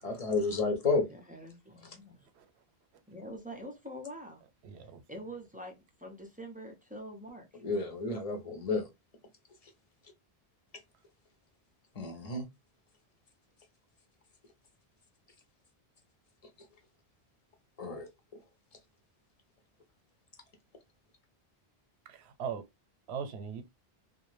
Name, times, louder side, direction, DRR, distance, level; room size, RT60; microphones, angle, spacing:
voice 1, 0.0-1.0 7.6-8.9 12.0-12.4 17.8-18.1, left 3 dB, 40° left, 0.7 m, -31 dB
voice 2, 1.1-2.3 3.1-4.4 5.1-7.6, equal, 15° right, 0.4 m, -45 dB
voice 3, 4.6-5.0 22.1-22.7 23.1-23.6, right 7 dB, 90° right, 0.9 m, -40 dB
2.5 x 2.1 x 3.1 m
omnidirectional pair, 1.1 m